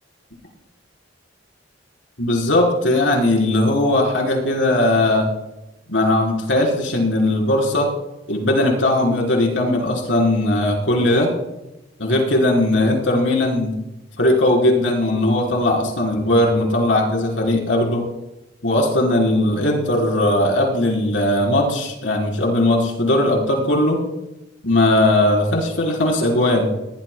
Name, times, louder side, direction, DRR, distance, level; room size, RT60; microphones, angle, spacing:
voice 1, 2.2-5.3 5.9-7.9 8.3-11.3 12.0-13.7 14.2-18.0 18.6-24.0 24.6-26.7, left 1 dB, 90° left, -1 dB, 4.2 m, -18 dB
20.5 x 19.0 x 2.3 m, 0.96 s
head